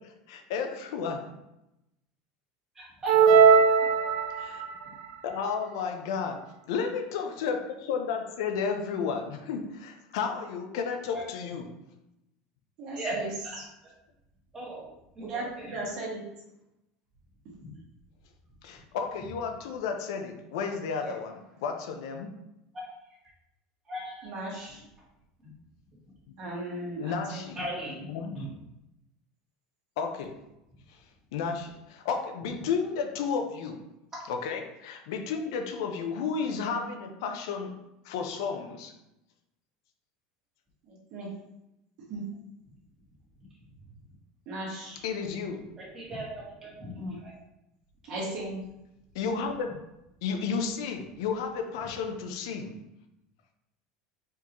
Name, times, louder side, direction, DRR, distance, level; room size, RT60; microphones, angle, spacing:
voice 1, 0.3-1.2 4.3-4.6 5.2-11.7 18.6-22.4 27.0-27.6 28.1-28.5 30.0-30.4 30.9-31.0 31.3-33.8 34.3-37.8 38.0-38.9 45.0-45.6 49.1-49.7 50.2-52.8, left 5 dB, 75° left, 5 dB, 0.6 m, -32 dB
voice 2, 2.7-3.6 11.1-11.2 12.9-13.2 14.5-14.8 15.1-15.7 17.6-17.7 22.7-22.9 23.9-24.2 24.5-24.7 27.5-28.5 45.8-47.3, equal, 15° right, -5 dB, 1.5 m, -38 dB
sound 1, 3.1-4.7, right 6 dB, 80° right, 0.4 m, -19 dB
voice 3, 12.8-13.3 13.6-13.7 15.2-16.2 21.0-21.1 24.2-24.8 26.4-27.4 40.8-41.3 42.1-42.3 44.4-45.0 46.9-47.1 48.0-48.6, right 2 dB, 40° right, -3 dB, 1.5 m, -37 dB
4.6 x 3.8 x 3.0 m, 0.89 s
supercardioid pair, 165°, 2 cm